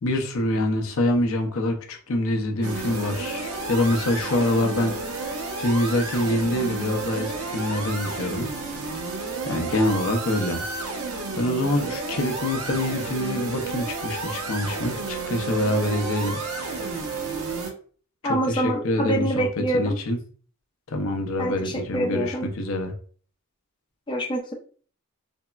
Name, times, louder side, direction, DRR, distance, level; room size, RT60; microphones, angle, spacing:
voice 1, 0.0-5.0 5.6-8.5 9.5-10.7 11.1-16.4 18.2-19.5 19.7-20.2 20.9-22.9, left 1 dB, 70° left, 3 dB, 0.6 m, -25 dB
sound 1, 2.6-17.7, right 3 dB, 75° right, 0.6 m, -31 dB
voice 2, 18.2-20.0 21.4-22.5 24.1-24.5, right 1 dB, 20° left, 0 dB, 0.5 m, -26 dB
3.5 x 2.0 x 2.2 m, 0.43 s
head